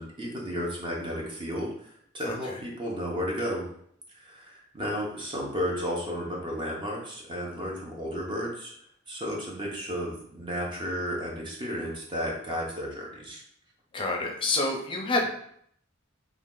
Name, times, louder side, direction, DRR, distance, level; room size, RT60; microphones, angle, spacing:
voice 1, 0.0-1.9 2.1-3.7 4.1-8.7 9.1-13.4, equal, 25° right, -2 dB, 0.8 m, -33 dB
voice 2, 2.3-2.6 13.9-15.3, left 2 dB, 25° left, 0 dB, 0.6 m, -28 dB
3.2 x 2.4 x 3.8 m, 0.67 s
head